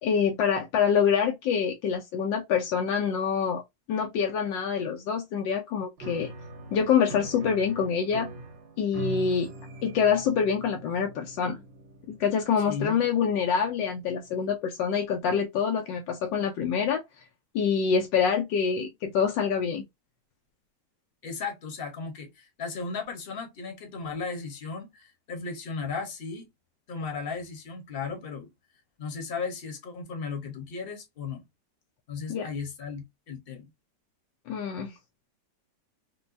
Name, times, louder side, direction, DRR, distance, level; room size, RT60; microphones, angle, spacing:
voice 1, 0.0-3.6 3.9-6.3 6.7-8.3 8.8-9.5 9.8-11.6 12.1-17.0 17.5-19.8 32.3-32.5 34.5-34.9, left 6 dB, 85° left, 1.3 m, -26 dB
Piano, 6.0-14.5, right 1 dB, 85° right, 1.8 m, -42 dB
voice 2, 12.6-13.1 21.2-26.5 26.9-28.5 29.0-31.4 32.1-33.7, left 5 dB, 40° left, 0.9 m, -36 dB
4.2 x 2.3 x 2.5 m
omnidirectional pair, 2.0 m